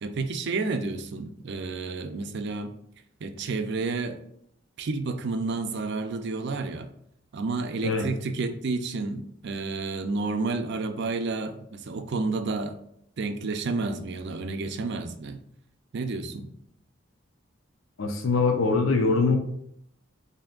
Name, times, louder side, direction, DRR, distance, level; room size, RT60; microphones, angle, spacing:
voice 1, 0.0-2.7 3.2-4.2 4.8-6.9 7.3-12.8 13.2-15.4 15.9-16.5, right 3 dB, 60° right, 7 dB, 0.4 m, -30 dB
voice 2, 18.0-19.4, left 4 dB, 85° left, 5 dB, 0.6 m, -23 dB
3.4 x 2.7 x 3.7 m, 0.72 s
head